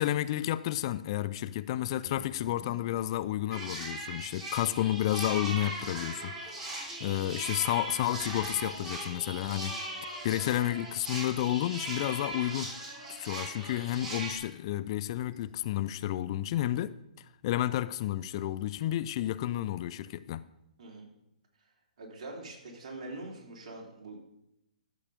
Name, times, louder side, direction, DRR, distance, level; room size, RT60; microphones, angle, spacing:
voice 1, 0.0-9.8 10.2-12.7 13.2-17.0 17.4-20.4, left 13 dB, 40° left, 0.4 m, -31 dB
sound 1, 2.0-3.0 3.8-3.9 4.6-5.3 6.0-6.2 7.1-7.2 7.8-9.1 10.7-10.9 11.7-12.4 12.7-12.8 15.2-16.1 18.2-18.7, left 4 dB, 20° left, 2.6 m, -55 dB
sound 2, 3.5-14.3, right 1 dB, 15° right, 3.3 m, -39 dB
voice 2, 22.0-24.3, right 2 dB, 50° right, 3.7 m, -44 dB
13.0 x 7.4 x 5.1 m
hypercardioid pair, 135°, 4 cm